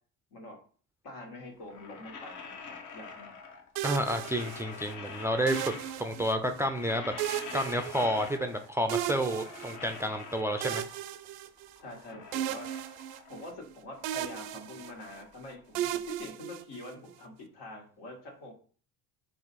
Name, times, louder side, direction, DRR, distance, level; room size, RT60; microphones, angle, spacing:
voice 1, 1.0-3.4 11.8-12.7 13.3-18.5, left 2 dB, 75° left, 0 dB, 1.7 m, -45 dB
sound 1, 1.6-3.8 4.0-6.2 6.5-8.8 9.0-11.1 11.6-13.6 13.9-16.1, left 5 dB, 50° left, 0.9 m, -46 dB
voice 2, 3.8-7.1 7.5-10.8, equal, 10° right, 6 dB, 0.3 m, -30 dB
sound 2, 3.8-4.9 5.5-6.6 7.2-8.5 8.9-10.1 10.6-12.0 12.3-13.7 14.0-15.2 15.8-17.1, right 12 dB, 80° right, 0.5 m, -36 dB
4.3 x 2.5 x 4.1 m, 0.42 s
supercardioid pair, 90°, 38 cm